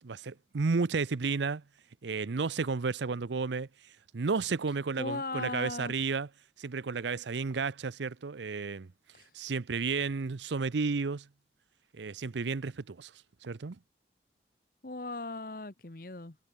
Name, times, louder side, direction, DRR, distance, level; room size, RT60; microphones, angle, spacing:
voice 1, 0.0-1.6 2.0-3.7 4.1-6.3 6.6-8.9 9.3-11.3 11.9-13.1 13.4-13.8, right 4 dB, 90° right, 0.6 m, -32 dB
voice 2, 5.0-5.9 9.1-9.3 14.8-16.4, left 3 dB, 50° left, 1.3 m, -38 dB
head